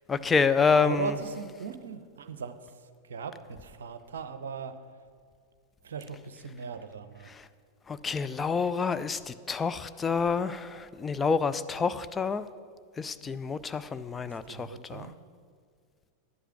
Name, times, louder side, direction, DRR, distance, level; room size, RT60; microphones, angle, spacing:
voice 1, 0.1-1.2 7.3-7.5 7.9-12.5 13.0-15.1, left 5 dB, 15° left, 12 dB, 0.4 m, -28 dB
voice 2, 0.8-4.8 5.8-7.3 14.3-15.1, right 6 dB, 65° right, 10 dB, 0.7 m, -38 dB
11.0 x 8.1 x 5.9 m, 2.1 s
figure-of-eight pair, 90°, 0 cm